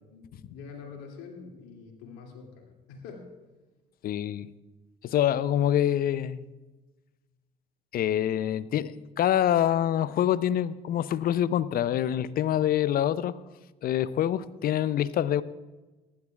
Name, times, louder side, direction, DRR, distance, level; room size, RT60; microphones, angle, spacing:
voice 1, 0.1-3.3, left 5 dB, 65° left, 1 dB, 2.5 m, -45 dB
voice 2, 4.0-4.5 5.0-6.5 7.9-13.4 13.8-15.4, left 11 dB, 45° left, 18 dB, 0.6 m, -26 dB
23.5 x 11.0 x 2.4 m, 1.2 s
figure-of-eight pair, 50°, 21 cm